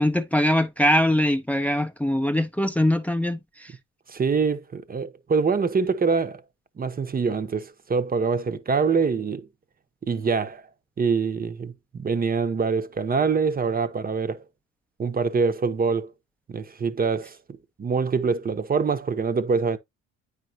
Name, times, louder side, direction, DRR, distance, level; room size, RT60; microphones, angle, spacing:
voice 1, 0.0-3.7, left 1 dB, 5° left, 0.7 m, -22 dB
voice 2, 4.1-6.4 6.8-9.5 10.1-10.6 11.0-14.4 15.0-16.1 16.5-17.4 17.8-19.8, right 5 dB, 30° right, 1.0 m, -24 dB
8.9 x 5.3 x 2.8 m
supercardioid pair, 85°, 32 cm